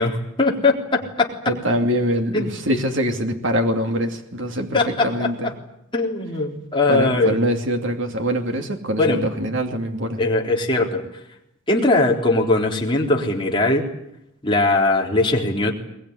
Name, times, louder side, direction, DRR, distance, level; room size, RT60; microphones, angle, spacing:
voice 1, 0.0-1.3 2.3-2.5 4.7-5.3 5.9-7.4 9.0-9.2 10.2-11.0 11.7-13.8 14.4-15.7, left 2 dB, 25° left, -1 dB, 3.8 m, -20 dB
voice 2, 1.5-5.5 6.9-10.2, equal, 65° right, 4 dB, 2.6 m, -24 dB
22.5 x 21.0 x 9.9 m, 0.82 s
head